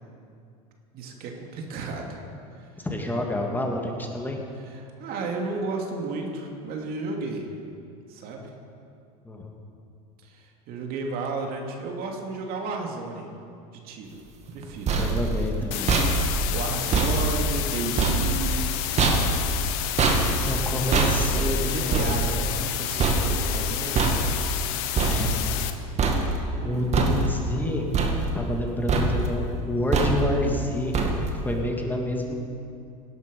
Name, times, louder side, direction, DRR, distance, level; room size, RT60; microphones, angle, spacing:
voice 1, 0.9-2.2 2.6-2.7 4.7-7.5 8.1-8.5 10.2-13.3 13.8-14.2 14.5-15.0 16.5-18.8 20.4-24.2 26.6-26.9, right 3 dB, 55° right, 1 dB, 2.6 m, -33 dB
voice 2, 2.8-4.4 9.2-9.6 14.9-16.0 20.5-22.4 25.1-25.6 26.6-27.9 28.3-30.9 31.4-32.3, left 1 dB, 10° left, 1 dB, 2.3 m, -28 dB
Banging noise, 14.5-25.7 26.0-26.6 26.9-27.6 27.9-28.6 28.9-29.4 29.9-30.5 30.9-31.5, right 3 dB, 35° right, 2.4 m, -25 dB
sound 1, 15.7-25.7, left 12 dB, 65° left, 1.2 m, -30 dB
18.0 x 11.0 x 5.4 m, 2.5 s
hypercardioid pair, 90°, 19 cm